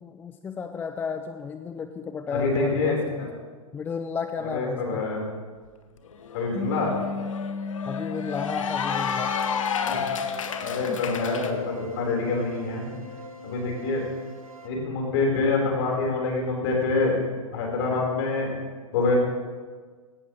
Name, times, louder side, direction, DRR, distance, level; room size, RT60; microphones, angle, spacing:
voice 1, 0.0-3.3 3.7-5.0 7.9-9.3 10.9-11.0, left 5 dB, 10° left, 8 dB, 0.3 m, -33 dB
voice 2, 2.3-3.3 4.4-5.2 6.3-6.9 9.8-10.0 10.6-12.9 13.4-14.0 14.6-17.2 17.5-18.5 18.9-19.2, left 3 dB, 45° left, -1 dB, 4.2 m, -26 dB
Cheering / Applause, 5.7-5.8 6.1-11.5, left 7 dB, 65° left, 1.0 m, -31 dB
sound 1, 6.5-11.2, left 4 dB, 15° right, 2.7 m, -35 dB
sound 2, 8.9-14.7, left 1 dB, 80° right, 1.3 m, -42 dB
16.5 x 11.5 x 3.2 m, 1.5 s
figure-of-eight pair, 115°, 18 cm